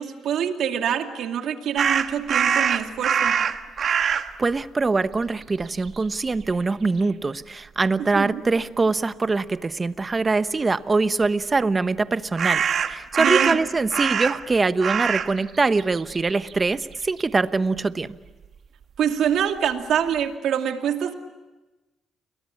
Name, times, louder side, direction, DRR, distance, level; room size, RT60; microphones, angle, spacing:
voice 1, 0.0-3.3 8.0-8.4 13.2-13.6 19.0-21.1, right 8 dB, 75° right, 5 dB, 2.4 m, -25 dB
sound 1, 1.8-4.3 5.1-5.3 5.6-6.5 12.4-14.5 14.8-15.3 15.6-17.2, right 7 dB, 55° right, 1.4 m, -23 dB
voice 2, 4.4-12.6 12.9-18.2, right 3 dB, 25° right, 13 dB, 1.0 m, -23 dB
30.0 x 22.0 x 8.6 m, 1.1 s
cardioid pair, 90°, 0 cm